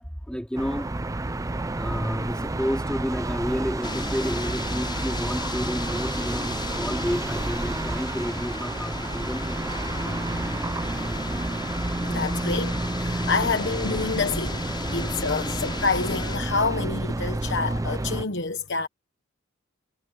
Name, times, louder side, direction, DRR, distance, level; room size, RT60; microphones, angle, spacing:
voice 1, 0.3-0.9 1.8-9.9, equal, 5° left, 2.6 m, -31 dB
sound 1, 0.6-18.3, right 2 dB, 15° right, 0.5 m, -30 dB
sound 2, 3.8-16.4, left 3 dB, 25° left, 6.5 m, -36 dB
voice 2, 12.1-18.9, left 4 dB, 60° left, 1.1 m, -28 dB
head